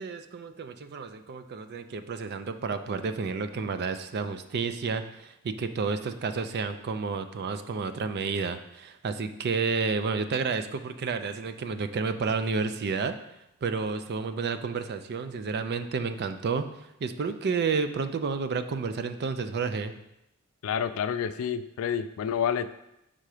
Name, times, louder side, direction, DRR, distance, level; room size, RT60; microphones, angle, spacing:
voice 1, 0.0-13.1 13.6-16.7 17.0-19.9, right 4 dB, 50° right, 9 dB, 0.4 m, -30 dB
voice 2, 20.6-22.7, left 8 dB, 65° left, 12 dB, 0.3 m, -29 dB
5.6 x 3.8 x 4.8 m, 0.85 s
head